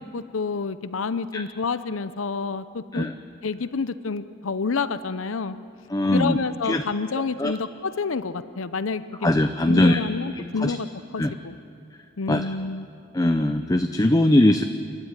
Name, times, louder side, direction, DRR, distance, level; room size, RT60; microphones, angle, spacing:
voice 1, 0.0-3.1 3.4-5.6 6.1-9.3 9.7-10.9 11.1-11.5 12.2-12.9, left 4 dB, 85° left, 14 dB, 0.7 m, -28 dB
voice 2, 5.9-6.4 6.6-6.8 7.4-7.6 9.2-10.0 10.6-10.8 11.2-11.3 12.3-12.5 13.1-14.6, left 1 dB, 20° left, 7 dB, 0.6 m, -20 dB
29.0 x 12.5 x 10.0 m, 2.4 s
head